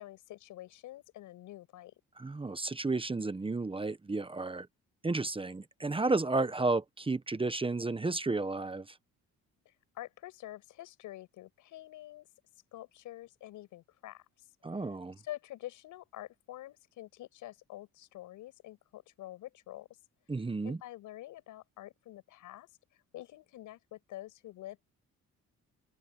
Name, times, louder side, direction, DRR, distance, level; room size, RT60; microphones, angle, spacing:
voice 1, 0.0-1.9 9.6-12.3 12.7-14.2 14.8-14.9 15.2-19.9 20.6-22.7 23.1-24.8, left 15 dB, 90° left, 6.7 m, -47 dB
voice 2, 2.2-4.7 5.0-8.9 14.6-15.1 20.3-20.8, right 3 dB, 15° right, 1.0 m, -32 dB
open air
cardioid pair, 90°, 30 cm